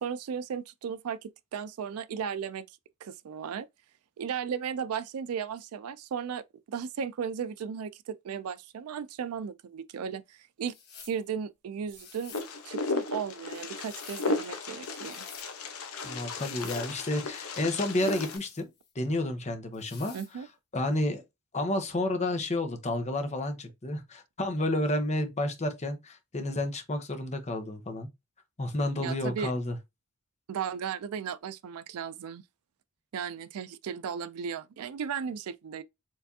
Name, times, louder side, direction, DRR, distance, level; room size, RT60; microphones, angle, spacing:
voice 1, 0.0-3.7 4.2-10.7 11.0-12.4 12.6-15.2 20.1-20.5 29.0-29.5 30.5-32.4 33.1-35.8, right 7 dB, 85° right, 0.4 m, -35 dB
sound 1, 10.6-11.2 11.9-12.5 13.5-14.4 14.9-15.5 16.3-16.9 17.9-18.9 19.7-20.3, left 7 dB, 50° left, 1.2 m, -50 dB
Wind, 12.3-18.4, left 3 dB, 75° left, 0.9 m, -35 dB
voice 2, 16.0-18.7 18.9-20.1 20.7-21.2 21.5-28.1 28.6-29.7, left 1 dB, 30° left, 0.9 m, -30 dB
4.6 x 3.3 x 2.7 m
head